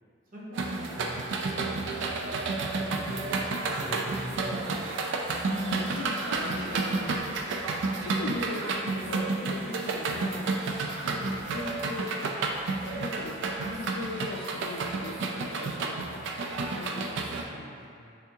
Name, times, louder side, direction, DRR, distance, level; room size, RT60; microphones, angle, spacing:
voice 1, 0.3-4.7 11.1-11.3 17.2-18.1, equal, 40° right, -7 dB, 0.9 m, -42 dB
sound 1, 0.6-17.4, right 3 dB, 60° right, 0.3 m, -31 dB
voice 2, 5.5-7.2 8.0-10.5 11.0-12.1 12.9-16.2 16.8-17.7, left 2 dB, 90° left, 2 dB, 0.4 m, -39 dB
3.4 x 3.4 x 2.9 m, 2.3 s
head